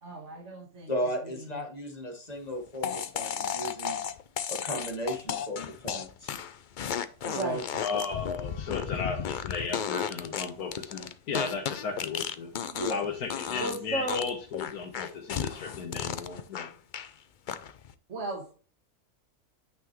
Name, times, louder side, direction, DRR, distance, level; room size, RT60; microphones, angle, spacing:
voice 1, 0.0-0.9 1.5-1.6 7.3-7.6 13.6-14.3 18.1-18.5, right 2 dB, 50° right, -1 dB, 1.7 m, -34 dB
voice 2, 0.9-4.0 4.5-6.3 7.2-7.6 12.6-13.0, equal, 30° left, 3 dB, 1.7 m, -35 dB
sound 1, 2.8-13.1 13.3-13.8 14.1-17.1 17.5-17.9, left 8 dB, 70° left, 0.4 m, -34 dB
voice 3, 7.8-12.5 12.9-16.7, left 5 dB, 85° left, 3 dB, 1.7 m, -35 dB
9.2 x 5.7 x 3.1 m, 0.40 s
omnidirectional pair, 1.6 m